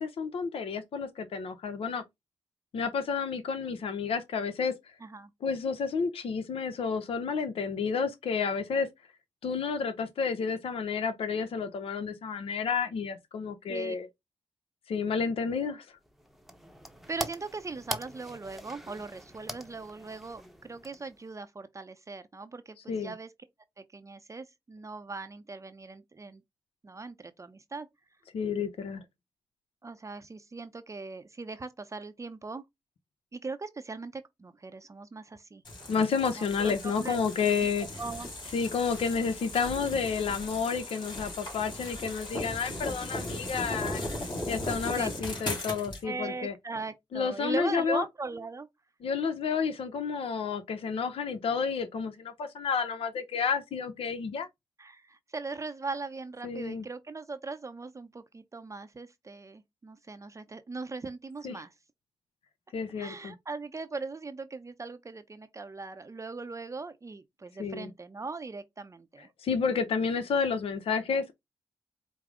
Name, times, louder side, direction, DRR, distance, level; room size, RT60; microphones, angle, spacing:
voice 1, 0.0-2.0 2.7-4.7 5.4-8.9 9.4-14.1 14.9-15.9 22.9-23.1 28.3-29.0 35.9-37.9 38.5-44.1 44.5-46.5 47.1-48.0 49.0-54.5 56.4-56.9 61.4-61.6 62.7-63.3 67.6-67.9 69.4-71.3, left 5 dB, 75° left, 0.6 m, -30 dB
sound 1, 16.0-21.4, equal, ahead, 0.8 m, -42 dB
voice 2, 17.1-23.3 23.8-26.4 26.8-27.9 29.8-32.6 33.3-35.6 36.4-37.7 38.0-38.3 39.2-39.3 45.0-45.1 46.0-48.7 54.8-61.7 63.0-69.3, right 3 dB, 30° right, 0.5 m, -40 dB
sound 2, 35.6-46.0, left 1 dB, 50° left, 2.5 m, -37 dB
4.7 x 2.0 x 3.6 m
cardioid pair, 55°, 10 cm